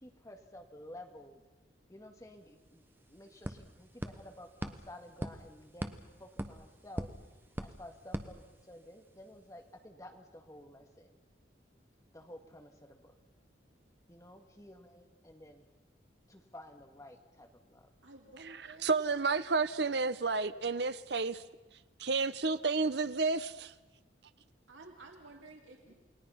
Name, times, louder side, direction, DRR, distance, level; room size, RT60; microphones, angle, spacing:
voice 1, 0.0-1.4 1.9-2.8 3.1-7.1 7.6-11.1 12.1-13.1 14.1-15.6 16.3-17.9 25.8-25.9, left 1 dB, 15° left, 4 dB, 1.9 m, -52 dB
sound 1, 2.3-2.4 2.7-9.1, equal, 10° right, 1.1 m, -43 dB
voice 2, 18.0-18.9 24.7-25.9, right 2 dB, 90° right, 2 dB, 2.7 m, -53 dB
voice 3, 18.8-21.4 22.0-23.7, right 4 dB, 60° right, 13 dB, 0.8 m, -31 dB
29.0 x 20.0 x 5.7 m, 1.2 s
head